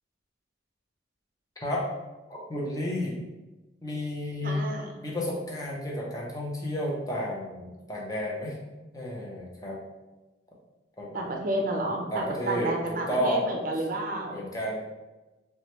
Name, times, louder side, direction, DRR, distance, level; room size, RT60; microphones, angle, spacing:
voice 1, 2.3-3.2 3.8-4.6 5.0-8.6 8.9-9.8 11.0-11.2 12.1-13.5 14.3-14.8, equal, 20° left, -3 dB, 0.5 m, -31 dB
voice 2, 4.4-4.9 11.1-14.4, right 1 dB, 45° right, 2 dB, 0.4 m, -31 dB
3.0 x 2.2 x 2.9 m, 1.1 s
head